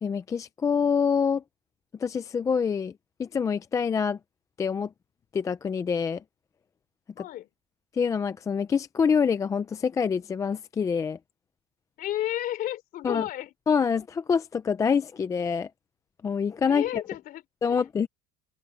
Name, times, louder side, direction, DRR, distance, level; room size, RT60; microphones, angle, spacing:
voice 1, 0.0-1.4 2.0-2.9 3.2-4.2 4.6-4.9 5.3-6.2 7.9-11.2 13.0-13.3 13.7-15.7 16.2-16.8 17.6-18.1, left 6 dB, 15° left, 0.4 m, -26 dB
voice 2, 7.2-7.5 12.0-13.5 16.7-17.8, left 13 dB, 45° left, 3.5 m, -32 dB
cardioid pair, 165°, 20 cm